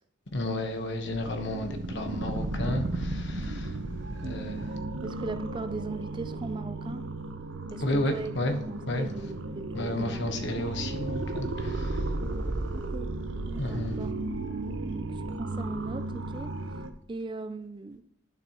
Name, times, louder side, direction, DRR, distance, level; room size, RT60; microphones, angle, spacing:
voice 1, 0.3-3.8 4.1-4.8 7.8-8.6 8.9-9.1 9.7-12.2 13.6-14.0, left 1 dB, 60° left, 1.1 m, -32 dB
sound 1, 1.1-16.9, right 2 dB, 65° right, 0.8 m, -34 dB
voice 2, 5.0-7.0 7.7-8.3 8.7-10.5 12.7-13.1 13.5-16.6 17.1-18.0, right 3 dB, 25° right, 0.4 m, -39 dB
11.0 x 6.4 x 3.0 m
head